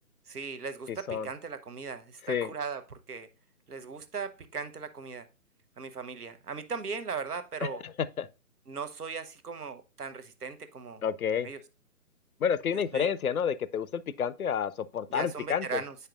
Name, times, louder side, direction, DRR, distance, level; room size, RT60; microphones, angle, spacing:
voice 1, 0.3-3.3 3.7-5.3 5.8-7.8 8.7-11.0 11.4-11.6 12.9-13.1 15.1-15.9, right 5 dB, 80° right, 1.0 m, -38 dB
voice 2, 0.9-1.3 2.3-2.5 7.6-8.3 11.0-11.5 12.4-15.8, left 7 dB, 70° left, 0.5 m, -30 dB
8.1 x 5.5 x 2.4 m
figure-of-eight pair, 145°, 45 cm